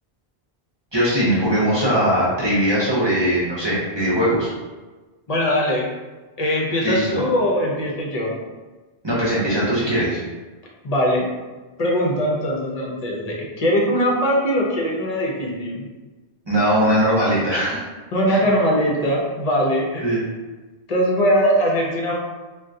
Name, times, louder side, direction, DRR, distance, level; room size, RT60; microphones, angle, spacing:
voice 1, 0.9-4.5 6.8-7.2 9.0-10.2 16.5-17.8 18.3-18.4 20.0-20.2, equal, 30° right, -8 dB, 0.8 m, -20 dB
voice 2, 5.3-5.9 6.4-8.4 10.8-11.3 11.8-15.8 18.1-20.1 20.9-22.2, equal, 45° left, -2 dB, 0.6 m, -21 dB
3.6 x 2.2 x 2.6 m, 1.2 s
omnidirectional pair, 1.1 m